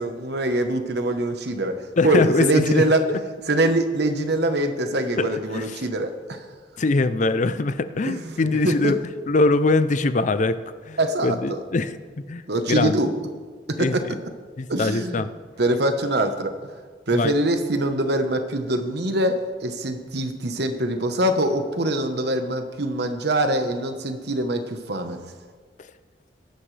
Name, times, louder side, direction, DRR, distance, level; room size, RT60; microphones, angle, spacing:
voice 1, 0.0-3.1 3.5-6.4 8.0-8.9 11.0-11.6 12.5-13.1 13.7-14.0 14.7-15.3 15.6-16.7 17.1-25.2, right 1 dB, 65° right, 7 dB, 1.2 m, -24 dB
voice 2, 2.0-2.8 3.1-3.2 5.2-5.8 6.8-9.0 9.3-10.6 10.9-12.0 12.3-12.4 12.7-13.0 13.8-14.2 14.6-15.3 17.1-17.3, left 3 dB, 45° left, 13 dB, 0.5 m, -22 dB
22.0 x 11.0 x 3.4 m, 1.6 s
head